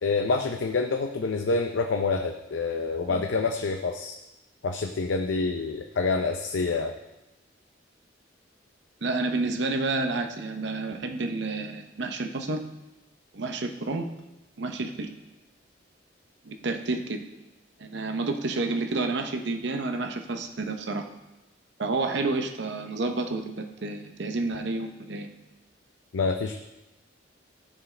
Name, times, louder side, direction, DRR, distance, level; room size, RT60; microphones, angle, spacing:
voice 1, 0.0-4.1 4.6-6.9 26.1-26.5, left 4 dB, 80° left, 4 dB, 0.5 m, -27 dB
voice 2, 9.0-12.6 13.3-14.1 14.6-15.1 16.4-17.2 17.8-21.1 21.8-25.3, right 3 dB, 65° right, 5 dB, 0.7 m, -30 dB
14.5 x 4.8 x 3.3 m, 0.99 s
head